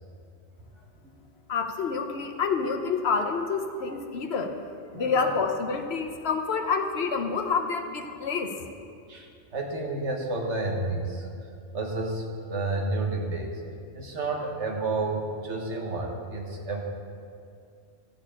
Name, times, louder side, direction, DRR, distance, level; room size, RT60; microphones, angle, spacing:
voice 1, 1.5-4.6 4.9-8.7, left 5 dB, 65° left, 5 dB, 1.0 m, -28 dB
voice 2, 4.9-5.3 9.1-11.3 11.7-13.5 13.9-16.8, right 2 dB, 75° right, 1 dB, 1.6 m, -30 dB
13.5 x 4.6 x 8.6 m, 2.3 s
omnidirectional pair, 1.2 m